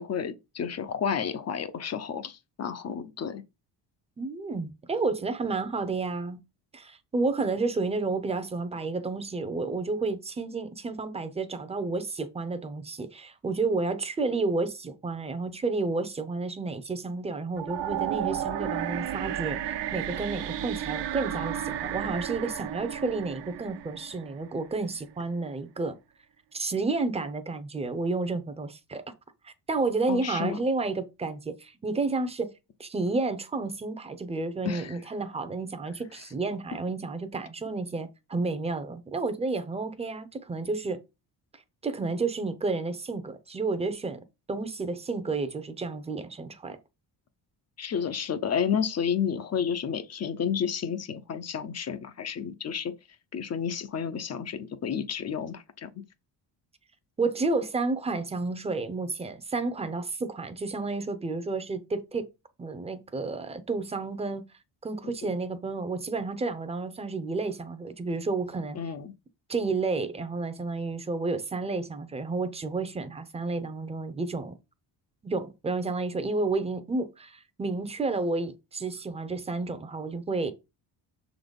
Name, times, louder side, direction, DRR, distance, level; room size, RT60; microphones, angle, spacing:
voice 1, 0.0-3.4 30.1-30.6 34.6-35.0 36.1-36.2 36.7-36.8 47.8-52.9 53.3-55.9 65.2-65.4 68.7-69.1, left 7 dB, 35° left, 0.6 m, -31 dB
voice 2, 4.2-6.4 6.7-26.0 26.5-29.0 29.4-32.5 32.8-41.0 41.8-44.2 44.5-46.8 57.2-62.3 62.6-64.4 64.8-68.8 69.5-74.5 75.2-80.5, right 3 dB, 15° right, 0.6 m, -31 dB
sound 1, 17.6-24.7, right 10 dB, 70° right, 0.7 m, -33 dB
6.6 x 4.0 x 5.2 m
cardioid pair, 175°, 43 cm